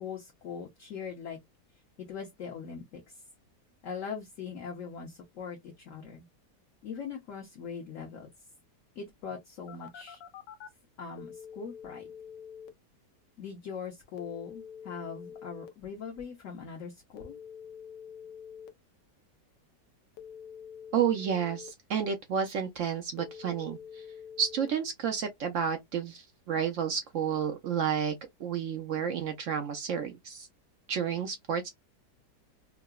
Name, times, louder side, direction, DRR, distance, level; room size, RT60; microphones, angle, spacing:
voice 1, 0.0-1.4 2.1-3.2 3.8-6.3 6.8-8.3 9.0-10.2 11.0-12.0 13.4-17.4, left 6 dB, 55° left, 1.0 m, -41 dB
Telephone, 9.7-10.7 11.2-12.7 14.2-15.7 17.2-18.7 20.2-21.7 23.2-24.7, left 7 dB, 80° left, 1.3 m, -46 dB
voice 2, 20.9-24.0 24.4-28.1 28.4-30.5 30.9-31.7, right 7 dB, 70° right, 0.7 m, -31 dB
4.7 x 2.1 x 2.3 m
omnidirectional pair, 1.9 m